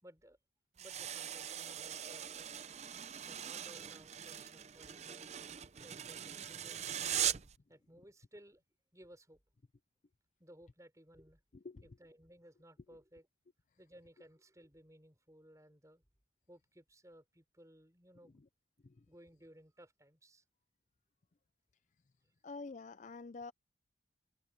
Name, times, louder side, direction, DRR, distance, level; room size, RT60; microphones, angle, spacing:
voice 1, 0.0-0.4 0.8-2.5 3.2-5.3 5.8-6.9 7.7-8.6 8.9-9.4 10.4-11.4 11.8-13.3 13.8-16.0 16.5-18.4 19.1-20.4, equal, 15° right, 6.0 m, -59 dB
sound 1, 0.8-7.6, right 10 dB, 35° right, 0.5 m, -41 dB
voice 2, 11.6-12.0 12.9-13.0 18.8-19.0 22.4-23.5, left 3 dB, 40° left, 0.5 m, -48 dB
open air
head